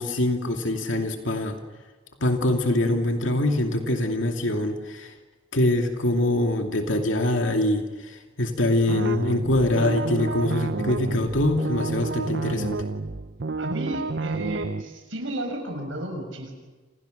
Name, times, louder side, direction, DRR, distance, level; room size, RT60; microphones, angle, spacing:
voice 1, 0.0-1.6 2.2-5.1 5.5-12.8, left 1 dB, 75° left, 4 dB, 2.5 m, -24 dB
sound 1, 8.9-14.8, right 3 dB, 60° right, 0.9 m, -30 dB
voice 2, 13.6-16.5, right 1 dB, 80° right, 4 dB, 6.7 m, -33 dB
29.5 x 27.5 x 6.6 m, 1.3 s
head